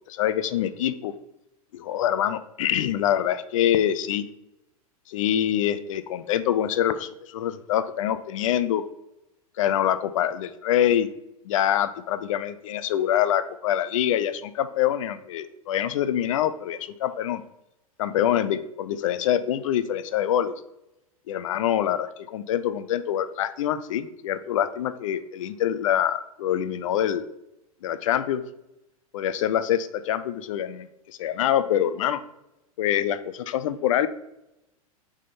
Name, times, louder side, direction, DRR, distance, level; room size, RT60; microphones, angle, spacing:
voice 1, 0.1-1.1 1.7-4.3 5.1-8.8 9.6-11.1 11.4-17.4 18.0-20.5 21.3-27.3 27.8-28.4 29.1-32.2 32.8-34.1, left 10 dB, 60° left, 13 dB, 0.5 m, -25 dB
6.1 x 3.7 x 4.2 m, 0.89 s
figure-of-eight pair, 95°, 19 cm